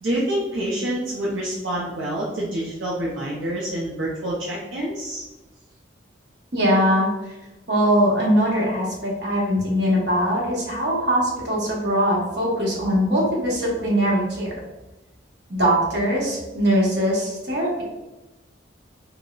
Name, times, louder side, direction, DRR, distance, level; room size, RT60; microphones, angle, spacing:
voice 1, 0.0-5.2, right 1 dB, 85° right, -5 dB, 0.6 m, -27 dB
voice 2, 6.5-7.3 7.7-14.5 15.5-17.8, equal, 65° right, -4 dB, 1.0 m, -21 dB
3.8 x 2.1 x 2.3 m, 1.0 s
head